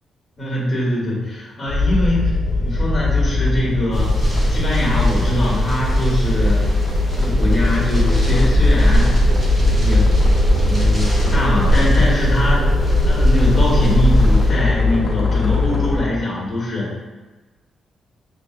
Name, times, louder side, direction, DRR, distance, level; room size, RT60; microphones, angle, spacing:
voice 1, 0.4-6.7 7.0-9.1 9.6-10.1 10.5-12.7 13.0-16.9, left 1 dB, 30° left, -6 dB, 1.4 m, -23 dB
sound 1, 1.7-16.0, left 3 dB, 65° left, 0.8 m, -21 dB
sound 2, 3.9-14.5, equal, 20° right, 1.1 m, -18 dB
6.4 x 2.5 x 2.5 m, 1.2 s
cardioid pair, 150°, 0 cm